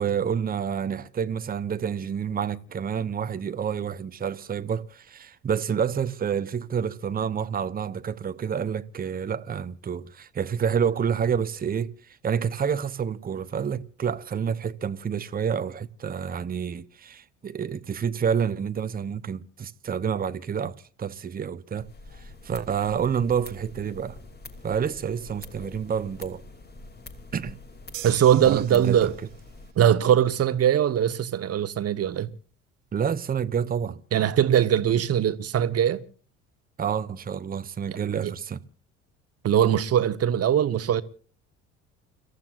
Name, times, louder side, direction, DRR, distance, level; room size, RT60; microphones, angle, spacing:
voice 1, 0.0-21.9 22.4-24.2 24.6-26.4 27.3-27.6 28.4-29.1 32.9-34.0 36.8-38.6, right 7 dB, 25° right, 0.9 m, -28 dB
sound 1, 21.7-29.7, left 2 dB, 25° left, 2.9 m, -45 dB
sound 2, 27.9-29.5, right 13 dB, 75° right, 1.3 m, -42 dB
voice 2, 28.0-29.1 29.8-32.3 34.1-36.0 37.9-38.0 38.2-38.3 39.4-41.0, right 10 dB, 40° right, 1.3 m, -21 dB
29.5 x 15.0 x 2.5 m
figure-of-eight pair, 60°, 39 cm